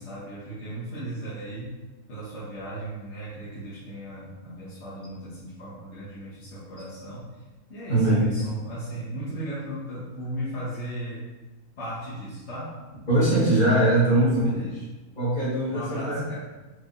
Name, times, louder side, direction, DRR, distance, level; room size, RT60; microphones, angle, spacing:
voice 1, 0.0-1.8 2.1-7.3 7.7-11.2 11.8-12.8 14.1-14.8 15.7-16.4, right 1 dB, 50° left, -9 dB, 1.2 m, -36 dB
voice 2, 7.9-8.4 13.1-14.5 15.2-16.2, right 1 dB, 30° left, -9 dB, 1.6 m, -21 dB
4.6 x 3.2 x 2.5 m, 1.2 s
omnidirectional pair, 1.6 m